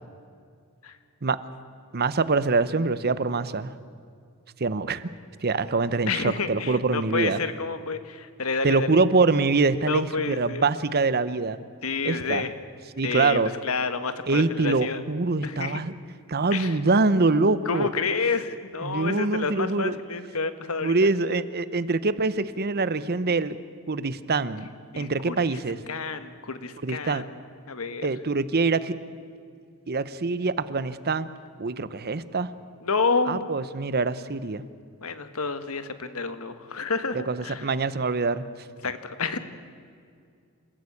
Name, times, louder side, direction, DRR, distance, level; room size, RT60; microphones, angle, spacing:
voice 1, 1.9-3.7 4.6-5.0 5.4-7.4 8.6-11.6 12.0-12.5 13.0-13.5 14.3-15.9 16.3-17.9 18.8-20.0 20.8-23.6 23.9-24.7 25.0-25.8 26.8-27.2 28.0-29.0 29.9-31.3 31.6-32.5 33.3-34.6 37.1-38.4, right 3 dB, 45° right, 14 dB, 0.8 m, -24 dB
voice 2, 6.1-8.9 9.9-10.6 11.8-12.5 13.0-15.0 15.4-15.8 16.5-16.7 17.6-20.9 24.9-25.6 25.9-27.2 27.7-28.1 32.8-33.5 35.0-37.7 38.8-39.4, left 4 dB, 70° left, 10 dB, 1.4 m, -29 dB
28.0 x 14.5 x 8.5 m, 2.3 s
head